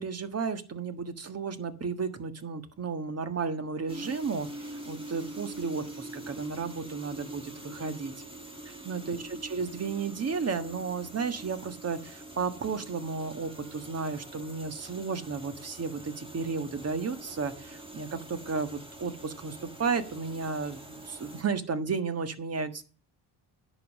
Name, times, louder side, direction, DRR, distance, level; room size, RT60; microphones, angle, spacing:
voice 1, 0.0-8.1 8.6-9.2 9.5-22.8, right 5 dB, 35° right, 10 dB, 1.5 m, -33 dB
sound 1, 3.9-21.4, right 1 dB, 10° right, 2.1 m, -44 dB
10.5 x 5.5 x 7.3 m, 0.38 s
cardioid pair, 100°, 42 cm